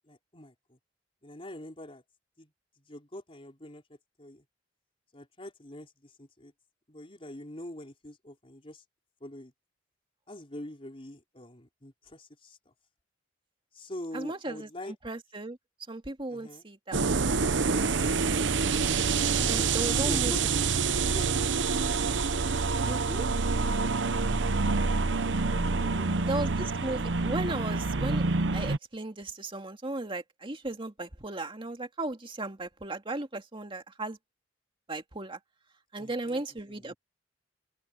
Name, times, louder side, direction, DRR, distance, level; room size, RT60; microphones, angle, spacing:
voice 1, 0.1-0.8 1.2-2.0 2.4-2.5 2.9-3.8 4.2-4.4 5.1-6.5 6.9-8.8 9.2-9.5 10.3-12.7 13.7-15.0 16.3-16.7 19.3-20.4 20.8-21.9 24.4-24.8 25.8-26.5 36.0-36.4 36.7-36.9, left 1 dB, 30° left, 4.2 m, -44 dB
voice 2, 14.1-15.6 15.9-17.3 19.5-20.3 22.9-23.3 26.2-28.2 28.5-34.2 34.9-35.4 35.9-36.9, right 2 dB, 30° right, 2.2 m, -36 dB
sound 1, 16.9-28.8, right 4 dB, 70° right, 0.8 m, -27 dB
open air
head